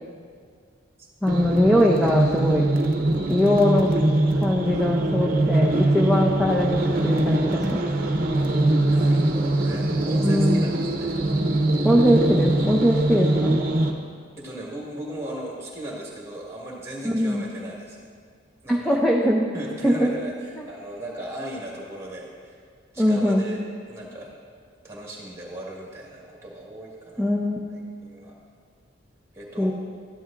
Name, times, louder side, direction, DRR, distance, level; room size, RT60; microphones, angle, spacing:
voice 1, 1.2-2.7 3.3-4.0 4.4-7.8 10.2-10.6 11.8-13.6 17.0-17.4 18.7-19.5 19.8-20.1 23.0-23.5 27.2-27.6 29.6-29.7, equal, ahead, -3 dB, 0.5 m, -21 dB
sound 1, 1.3-13.9, right 1 dB, 45° right, 0.8 m, -22 dB
voice 2, 8.9-11.1 14.4-18.0 18.6-19.0 19.5-22.6 22.9-24.3 24.8-27.3 27.7-28.4 29.3-29.7, right 1 dB, 15° right, -3 dB, 1.7 m, -37 dB
12.5 x 11.0 x 2.5 m, 2.1 s
head